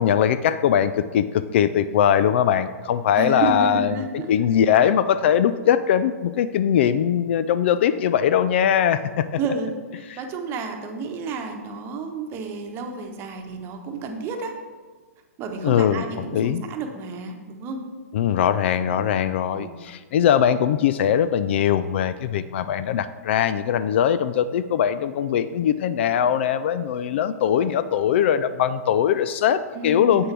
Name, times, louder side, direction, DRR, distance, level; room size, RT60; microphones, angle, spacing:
voice 1, 0.0-3.9 4.3-9.3 15.6-16.0 16.3-16.6 18.1-30.2, left 9 dB, 45° left, 13 dB, 0.4 m, -21 dB
voice 2, 3.2-4.3 9.4-9.7 9.9-14.5 15.4-17.9 18.9-19.0 19.5-19.8 29.7-30.3, right 4 dB, 30° right, 4 dB, 1.1 m, -31 dB
9.7 x 7.8 x 3.4 m, 1.4 s
figure-of-eight pair, 115°, 8 cm